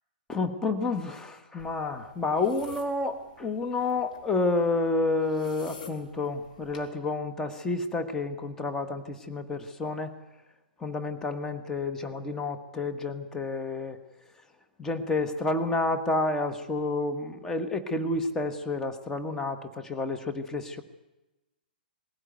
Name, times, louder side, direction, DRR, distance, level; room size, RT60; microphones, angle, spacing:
voice 1, 0.3-10.1 10.8-14.0 14.8-20.8, left 3 dB, 10° left, 6 dB, 1.5 m, -30 dB
sound 1, 1.6-6.9, left 5 dB, 55° left, 3.8 m, -50 dB
20.5 x 16.5 x 9.4 m, 1.0 s
figure-of-eight pair, 115°, 5 cm